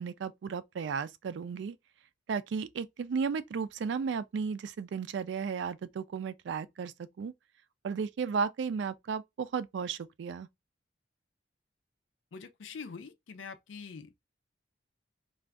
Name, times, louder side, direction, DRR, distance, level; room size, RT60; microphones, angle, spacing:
voice 1, 0.0-1.8 2.3-7.3 7.8-10.5, right 6 dB, 65° right, 0.3 m, -34 dB
voice 2, 12.3-14.1, left 5 dB, 85° left, 0.5 m, -44 dB
2.5 x 2.3 x 3.3 m
head